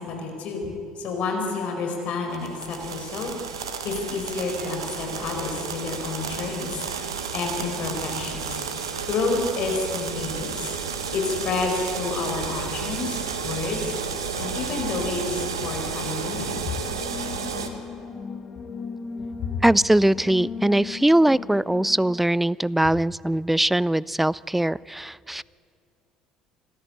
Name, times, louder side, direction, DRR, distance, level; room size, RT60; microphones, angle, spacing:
voice 1, 0.0-3.3 3.8-6.8 7.3-8.6 9.1-10.7 11.1-13.9 14.4-16.6 19.4-19.5, left 4 dB, 55° left, 3 dB, 5.1 m, -29 dB
sound 1, 2.3-17.7, right 5 dB, 85° right, 1.4 m, -32 dB
sound 2, 16.8-22.2, left 5 dB, 35° left, 1.9 m, -37 dB
voice 2, 19.6-25.4, right 1 dB, 5° right, 23 dB, 0.4 m, -21 dB
25.5 x 13.5 x 8.7 m, 2.5 s
hypercardioid pair, 60°, 3 cm